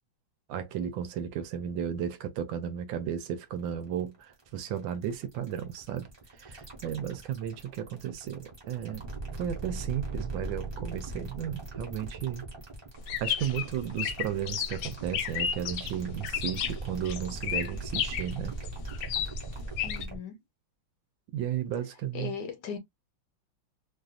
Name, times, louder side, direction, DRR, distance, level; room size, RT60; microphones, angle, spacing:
voice 1, 0.5-6.1 6.3-9.1 9.4-12.4 13.2-18.6 21.3-22.3, right 9 dB, 75° right, 1.3 m, -34 dB
sound 1, 3.5-20.2, right 2 dB, 15° right, 0.9 m, -40 dB
sound 2, 13.0-20.1, left 8 dB, 85° left, 1.4 m, -33 dB
voice 2, 19.8-20.4 22.1-22.8, left 6 dB, 65° left, 1.2 m, -38 dB
3.3 x 2.5 x 2.4 m
omnidirectional pair, 2.2 m